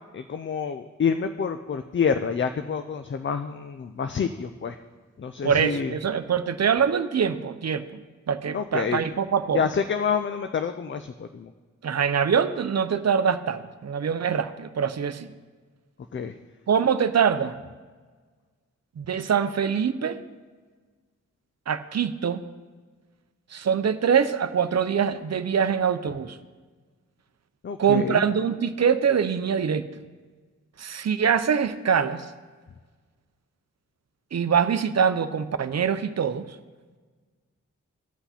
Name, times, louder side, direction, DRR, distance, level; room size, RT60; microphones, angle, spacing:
voice 1, 0.1-4.8 5.2-5.9 8.5-9.0 9.5-11.5 16.1-16.3 27.6-28.2, left 6 dB, 40° left, 9 dB, 0.5 m, -27 dB
voice 2, 5.4-8.0 8.3-9.6 11.8-15.3 16.7-17.6 19.0-20.2 21.7-22.4 23.5-26.4 27.8-29.9 30.8-32.3 34.3-36.6, right 7 dB, 60° right, 12 dB, 0.6 m, -24 dB
16.0 x 5.7 x 4.2 m, 1.4 s
cardioid pair, 60°, 31 cm